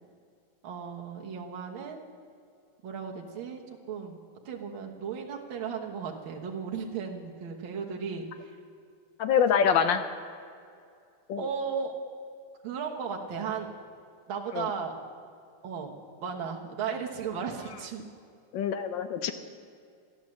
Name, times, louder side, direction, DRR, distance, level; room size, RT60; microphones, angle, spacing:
voice 1, 0.6-2.0 2.8-3.6 3.9-4.2 4.5-8.6 11.4-11.9 12.6-13.7 14.3-14.9 15.6-18.0, right 6 dB, 70° right, 0 dB, 2.0 m, -35 dB
voice 2, 9.2-10.0 11.3-11.4 14.5-14.7 18.5-19.3, left 7 dB, 70° left, 9 dB, 1.4 m, -25 dB
14.5 x 10.5 x 7.5 m, 2.3 s
omnidirectional pair, 2.4 m